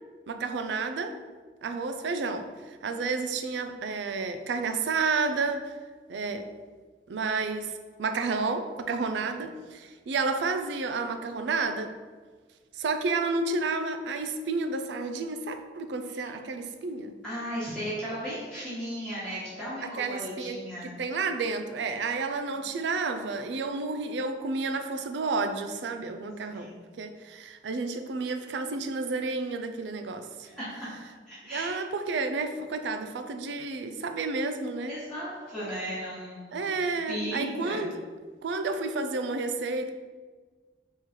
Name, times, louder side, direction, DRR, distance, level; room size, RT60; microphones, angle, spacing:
voice 1, 0.3-1.2 1.6-2.5 2.8-5.7 6.1-6.5 7.1-7.7 8.0-11.9 12.8-17.1 20.0-26.7 27.0-30.3 31.5-35.0 36.5-38.0 38.4-39.9, right 3 dB, 85° right, 7 dB, 0.4 m, -31 dB
voice 2, 17.2-21.0 22.5-22.7 26.5-26.8 30.4-31.8 34.9-36.7 37.1-37.8, equal, 5° left, -11 dB, 1.2 m, -36 dB
3.7 x 3.1 x 4.3 m, 1.4 s
head